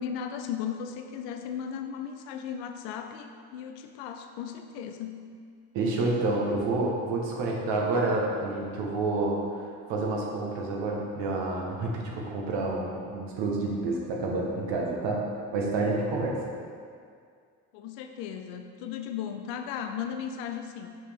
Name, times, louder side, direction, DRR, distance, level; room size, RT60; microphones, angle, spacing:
voice 1, 0.0-5.2 17.7-20.9, left 8 dB, 85° left, 6 dB, 0.5 m, -36 dB
voice 2, 5.7-15.2 15.5-16.4, right 2 dB, 75° right, -1 dB, 1.2 m, -29 dB
6.1 x 5.3 x 3.4 m, 2.2 s
hypercardioid pair, 50°, 44 cm